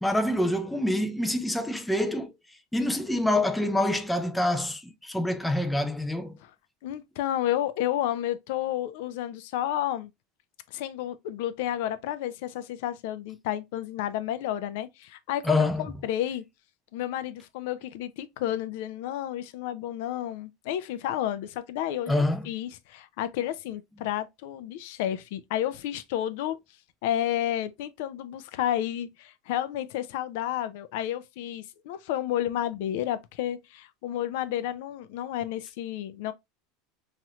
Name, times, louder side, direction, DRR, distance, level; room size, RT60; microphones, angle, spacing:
voice 1, 0.0-2.3 2.7-6.4 15.4-15.9 22.1-22.5, left 1 dB, 5° left, 0.4 m, -26 dB
voice 2, 6.8-10.1 10.7-16.4 16.9-26.6 27.0-36.3, left 12 dB, 70° left, 0.4 m, -31 dB
3.0 x 2.9 x 2.3 m
supercardioid pair, 135°, 0 cm